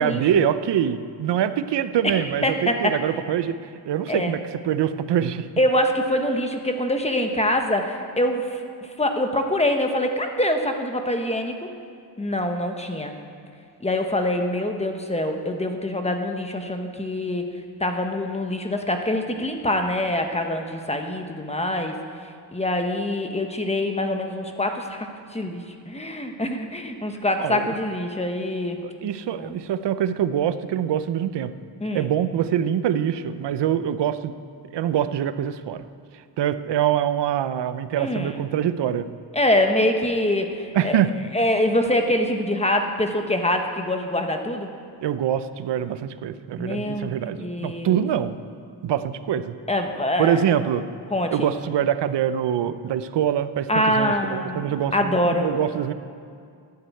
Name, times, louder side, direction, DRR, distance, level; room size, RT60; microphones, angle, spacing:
voice 1, 0.0-3.5 3.9-5.5 27.4-27.7 28.8-31.5 31.9-34.3 34.7-35.8 36.4-39.1 40.7-41.1 45.0-48.4 48.8-49.5 50.2-50.8 51.3-55.9, right 9 dB, 70° right, 12 dB, 0.8 m, -24 dB
voice 2, 2.0-3.0 4.1-4.3 5.6-11.7 12.2-13.1 13.8-17.5 17.8-22.0 22.5-25.1 25.3-28.8 29.4-29.6 31.8-32.1 38.0-38.4 39.3-41.0 41.3-44.7 46.6-48.0 49.7-50.4 51.1-51.5 53.7-55.5, left 1 dB, 15° left, 4 dB, 1.1 m, -24 dB
12.0 x 9.6 x 8.4 m, 2.3 s
wide cardioid pair, 130°, 43 cm